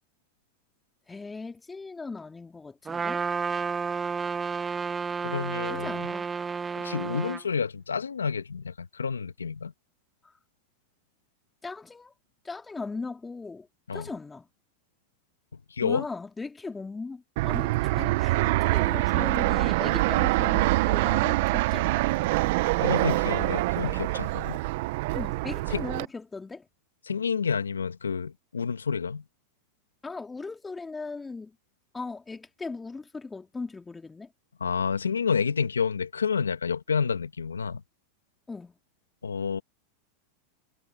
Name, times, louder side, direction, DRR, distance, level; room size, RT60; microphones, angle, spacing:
voice 1, 1.1-3.2 5.6-6.3 10.2-10.3 11.6-12.1 12.4-14.5 15.8-22.1 25.1-26.6 30.0-31.6 31.9-34.3 38.5-38.8, left 3 dB, 15° left, 2.9 m, -38 dB
Trumpet, 2.9-7.4, right 5 dB, 20° right, 0.4 m, -31 dB
voice 2, 5.2-5.9 6.8-9.7 13.9-14.1 15.8-16.0 22.8-24.6 25.7-25.8 27.1-29.2 34.6-37.8 39.2-39.6, left 6 dB, 90° left, 1.6 m, -29 dB
Fixed-wing aircraft airplane, 17.4-26.0, right 20 dB, 60° right, 1.3 m, -25 dB
hypercardioid pair, 95°, 0 cm